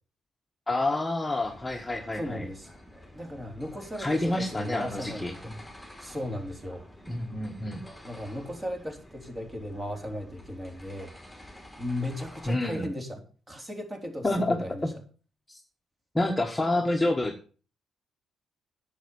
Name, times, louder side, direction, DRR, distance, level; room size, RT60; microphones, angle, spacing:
voice 1, 0.7-2.5 4.0-5.6 7.1-7.8 12.4-12.9 14.2-14.9 15.5-15.6 16.1-17.3, left 2 dB, 15° left, 2 dB, 1.5 m, -28 dB
sound 1, 1.4-12.6, left 1 dB, ahead, 3.3 m, -49 dB
voice 2, 2.1-2.7 3.1-5.5 6.0-6.8 8.0-11.1 11.8-13.2 13.5-14.9, left 1 dB, 20° right, 3 dB, 3.6 m, -36 dB
10.5 x 7.5 x 6.9 m, 0.39 s
cardioid pair, 90°, 0 cm